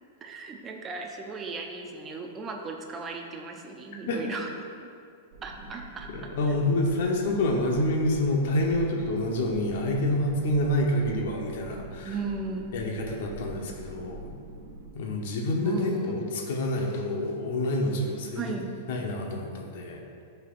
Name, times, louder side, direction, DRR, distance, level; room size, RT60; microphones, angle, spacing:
voice 1, 0.2-4.5 5.4-6.3 12.0-12.8 15.6-16.1 18.3-18.7, right 3 dB, 15° right, 2 dB, 0.5 m, -36 dB
sound 1, 5.3-14.9, right 1 dB, 55° right, 1.2 m, -45 dB
voice 2, 6.1-12.1 12.7-14.2 14.9-18.5 18.9-20.0, left 1 dB, 50° left, 0 dB, 0.9 m, -27 dB
11.0 x 5.6 x 2.5 m, 2.4 s
supercardioid pair, 180°, 0 cm